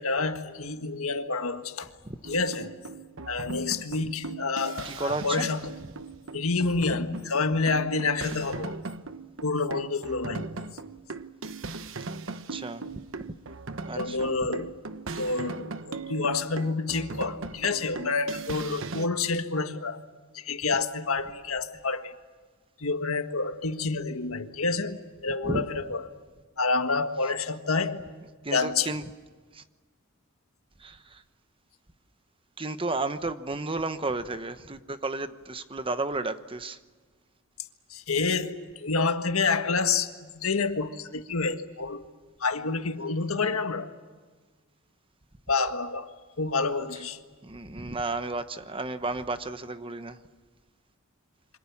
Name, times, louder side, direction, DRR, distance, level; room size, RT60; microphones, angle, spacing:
voice 1, 0.0-1.9 2.2-2.8 3.3-5.7 6.3-8.8 9.4-10.6 13.9-14.8 15.2-20.0 20.3-22.1 22.8-26.1 26.6-28.1 28.5-28.9 37.9-42.0 42.4-43.9 45.5-47.2, left 4 dB, 80° left, 1.7 m, -28 dB
sound 1, 2.2-19.1, right 3 dB, 65° right, 1.2 m, -39 dB
voice 2, 4.8-5.5 12.5-12.8 13.2-13.3 13.9-14.3 25.4-25.6 28.4-29.0 29.5-29.6 30.8-31.2 32.6-36.8 47.4-50.2, right 3 dB, 25° right, 1.1 m, -32 dB
28.0 x 25.5 x 7.3 m
head